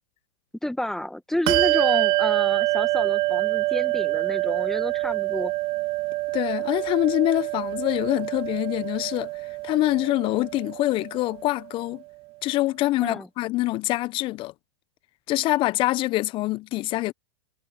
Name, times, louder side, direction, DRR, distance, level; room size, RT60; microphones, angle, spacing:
voice 1, 0.6-5.5 13.0-13.3, left 1 dB, ahead, 1.8 m, -30 dB
Bell, 1.5-11.4, right 21 dB, 40° right, 1.8 m, -26 dB
voice 2, 6.3-9.3 9.6-12.0 12.4-14.5 15.3-17.1, left 18 dB, 35° left, 1.2 m, -25 dB
hypercardioid pair, 110°, 15 cm